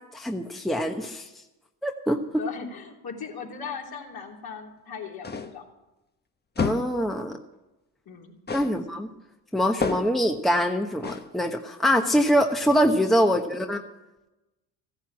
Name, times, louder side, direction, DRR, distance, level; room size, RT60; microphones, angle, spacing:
voice 1, 0.1-1.2 1.8-2.4 6.6-7.4 8.5-9.1 9.5-13.8, equal, ahead, 4 dB, 1.1 m, -24 dB
voice 2, 2.4-5.6 8.0-8.8, left 6 dB, 55° left, -1 dB, 3.5 m, -38 dB
sound 1, 5.2-5.7 6.6-7.0 8.5-8.8 9.8-10.3 11.0-11.3, left 4 dB, 20° left, 1.1 m, -30 dB
15.0 x 9.7 x 7.4 m, 0.99 s
hypercardioid pair, 65°, 45 cm